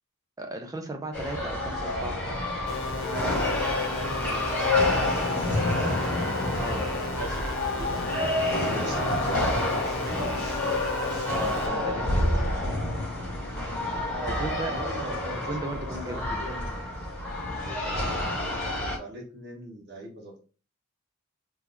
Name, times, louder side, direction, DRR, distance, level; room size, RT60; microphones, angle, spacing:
voice 1, 0.4-2.2 6.6-6.9 8.7-8.9 11.3-12.3 14.3-14.7 15.5-16.2, right 2 dB, 15° right, 4 dB, 0.6 m, -36 dB
sound 1, 1.1-19.0, left 1 dB, 5° left, 2.2 m, -28 dB
sound 2, 2.7-11.7, left 3 dB, 70° left, 1.0 m, -36 dB
voice 2, 2.9-6.2 6.8-10.8 12.1-12.7 14.1-15.5 16.0-16.9 17.5-18.4 18.9-20.4, right 2 dB, 55° right, 0 dB, 1.3 m, -41 dB
3.9 x 3.0 x 3.3 m, 0.35 s
head